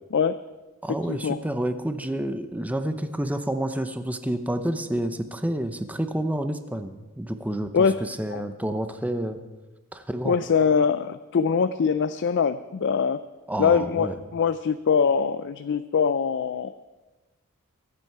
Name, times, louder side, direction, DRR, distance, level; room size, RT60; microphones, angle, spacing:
voice 1, 0.8-9.4 9.9-10.4 13.5-14.2, right 1 dB, 5° right, 9 dB, 0.7 m, -29 dB
voice 2, 10.2-13.2 13.6-16.7, left 6 dB, 55° left, 12 dB, 0.4 m, -23 dB
23.0 x 8.4 x 4.7 m, 1.1 s
head